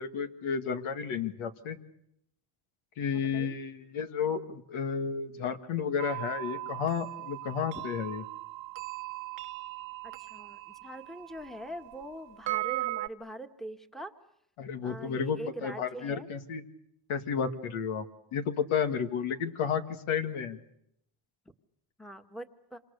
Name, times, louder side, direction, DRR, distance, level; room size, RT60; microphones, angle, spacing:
voice 1, 0.0-1.8 3.0-8.2 14.6-16.6 17.1-18.1 18.3-20.6, left 7 dB, 80° left, 7 dB, 2.1 m, -32 dB
voice 2, 3.0-3.5 10.0-14.1 14.8-16.3 22.0-22.8, right 1 dB, ahead, 6 dB, 1.6 m, -43 dB
sound 1, 6.0-13.1, right 18 dB, 65° right, 1.2 m, -38 dB
27.0 x 26.5 x 6.7 m, 0.76 s
cardioid pair, 105°, 49 cm